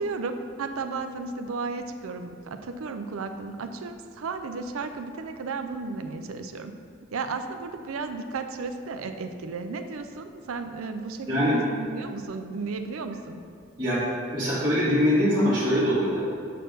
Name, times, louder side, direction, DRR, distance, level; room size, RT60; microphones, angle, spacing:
voice 1, 0.0-6.7 7.1-13.4, right 4 dB, 85° right, 7 dB, 0.5 m, -34 dB
voice 2, 11.3-11.6 13.8-14.0 14.3-16.2, equal, 20° right, -13 dB, 1.7 m, -23 dB
6.4 x 4.4 x 6.5 m, 2.2 s
head